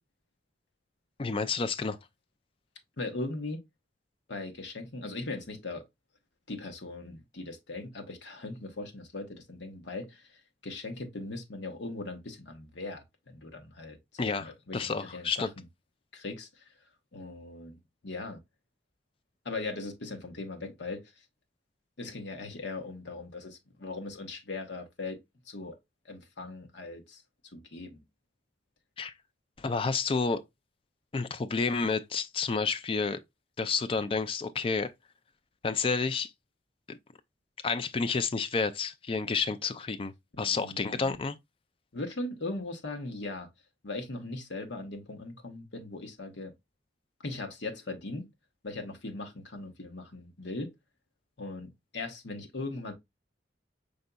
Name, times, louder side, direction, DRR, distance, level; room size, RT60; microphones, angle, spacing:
voice 1, 1.2-2.0 14.2-15.5 29.0-29.1 29.6-30.4 31.1-33.2 33.6-34.9 35.6-36.3 36.9-37.0 37.6-41.4, left 4 dB, 30° left, 0.3 m, -30 dB
voice 2, 3.0-3.6 4.3-5.8 6.5-15.5 16.1-16.7 17.1-18.4 19.4-21.1 22.0-25.2 25.5-25.8 26.0-27.2 27.5-28.0 40.4-41.2 41.9-43.5 43.8-46.5 47.2-48.3 48.6-50.7 51.4-52.9, left 2 dB, 70° left, 0.9 m, -39 dB
5.2 x 3.9 x 2.2 m
head